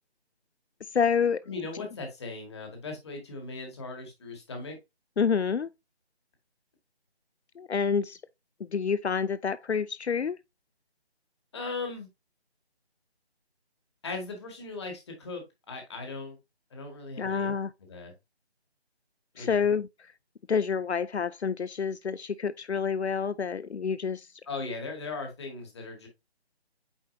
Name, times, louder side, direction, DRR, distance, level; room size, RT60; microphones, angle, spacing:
voice 1, 0.9-1.4 5.2-5.7 7.6-8.2 8.7-10.4 17.2-17.7 19.4-19.9 20.5-24.3, left 6 dB, 80° left, 0.5 m, -28 dB
voice 2, 1.5-4.8 11.5-12.1 14.0-16.4 16.7-17.5 17.8-18.1 19.4-19.6 24.5-26.1, left 3 dB, 25° left, 1.9 m, -38 dB
8.8 x 4.5 x 2.7 m
figure-of-eight pair, 155°, 33 cm